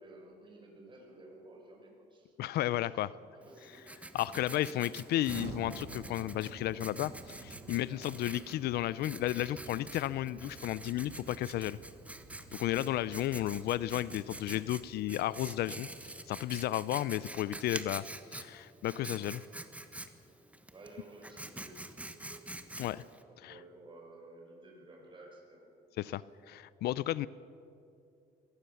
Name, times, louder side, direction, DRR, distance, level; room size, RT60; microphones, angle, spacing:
voice 1, 0.0-2.3 2.8-3.0 3.3-4.0 4.4-4.5 7.9-8.1 16.6-16.8 20.7-22.9 23.3-26.2, right 2 dB, 30° right, 0 dB, 5.4 m, -54 dB
voice 2, 2.4-3.1 4.1-11.8 12.6-18.0 18.3-19.4 22.8-23.0 23.4-23.5 26.0-26.2 26.5-27.3, left 14 dB, 70° left, 18 dB, 0.5 m, -33 dB
Writing, 3.4-23.2, right 1 dB, 10° right, 1.3 m, -47 dB
Explosion, 5.2-15.2, right 4 dB, 70° right, 2.5 m, -51 dB
22.0 x 18.0 x 7.1 m, 2.6 s
cardioid pair, 110°, 17 cm